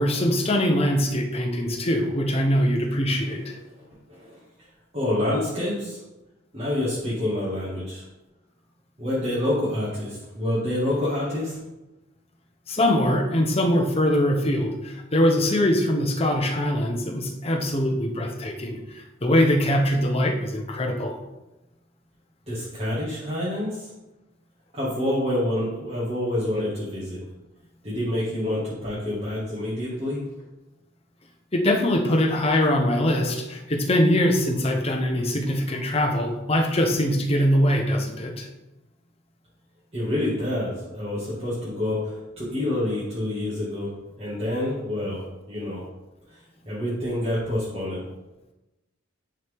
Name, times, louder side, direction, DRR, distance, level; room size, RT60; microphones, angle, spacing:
voice 1, 0.0-3.5 12.7-21.2 31.5-38.5, left 1 dB, 30° left, 2 dB, 1.0 m, -22 dB
voice 2, 4.9-6.0 6.5-8.0 9.0-11.5 22.5-23.9 24.7-27.2 27.8-30.2 39.9-45.8 46.3-46.4 46.7-48.0, left 1 dB, 30° right, -10 dB, 2.0 m, -27 dB
9.9 x 4.5 x 3.7 m, 1.0 s
head